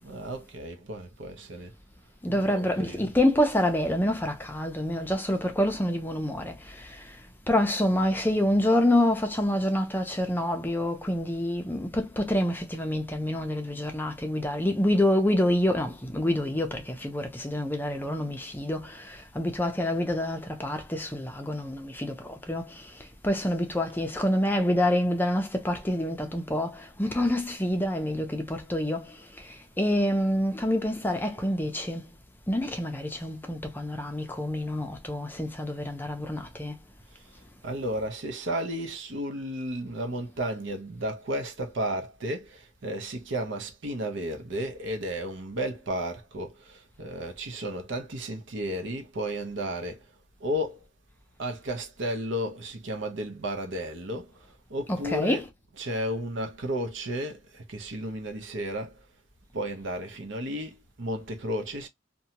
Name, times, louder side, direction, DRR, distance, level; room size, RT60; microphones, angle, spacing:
voice 1, 0.0-1.7 2.3-3.1 37.6-50.0 50.4-50.8 51.4-54.3 54.7-59.0 59.5-61.9, equal, 65° right, 0.7 m, -33 dB
voice 2, 2.2-7.2 7.5-32.1 32.5-36.8 54.9-55.5, left 1 dB, 10° left, 0.5 m, -27 dB
2.7 x 2.2 x 2.8 m
head